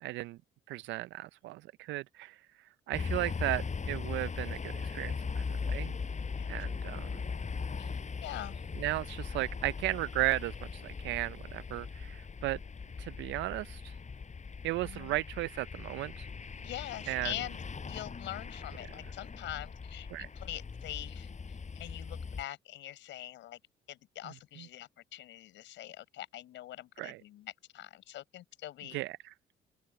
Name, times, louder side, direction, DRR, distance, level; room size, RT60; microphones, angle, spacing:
voice 1, 0.0-0.4 0.7-2.4 2.9-5.9 6.5-7.1 8.8-12.6 13.0-13.9 14.6-16.3 17.1-17.3 20.1-20.3 27.0-27.2 28.9-29.3, right 17 dB, 70° right, 0.5 m, -35 dB
sound 1, 2.9-22.4, left 5 dB, 40° left, 6.2 m, -39 dB
voice 2, 8.2-8.6 14.8-15.2 16.6-21.3 21.7-23.6 23.9-29.0, left 14 dB, 70° left, 7.0 m, -43 dB
open air
hypercardioid pair, 55°, 20 cm